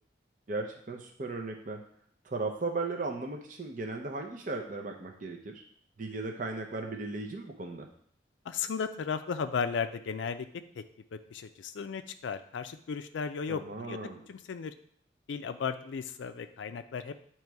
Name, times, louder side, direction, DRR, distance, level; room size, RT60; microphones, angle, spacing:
voice 1, 0.5-1.8 2.2-5.6 6.0-7.9 13.5-14.2, right 3 dB, 45° right, 2 dB, 0.6 m, -36 dB
voice 2, 8.5-10.5 10.8-10.9 11.1-14.0 14.3-14.7 15.3-17.1, left 6 dB, 80° left, 9 dB, 0.4 m, -35 dB
8.9 x 3.0 x 4.6 m, 0.63 s
head